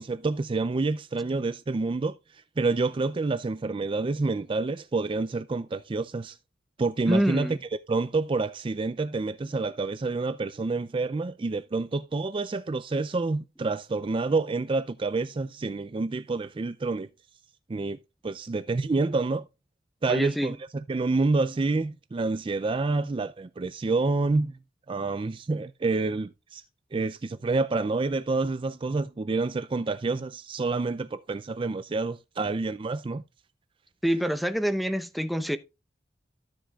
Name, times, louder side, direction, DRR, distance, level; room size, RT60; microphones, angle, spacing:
voice 1, 0.0-6.4 6.8-7.6 7.9-17.1 17.7-18.0 18.2-19.4 20.0-20.6 20.9-24.6 24.9-26.6 26.9-33.2, right 3 dB, 30° right, 0.4 m, -28 dB
voice 2, 7.1-7.6 20.1-20.5 34.0-35.6, equal, ahead, 0.7 m, -26 dB
13.0 x 7.5 x 2.3 m
head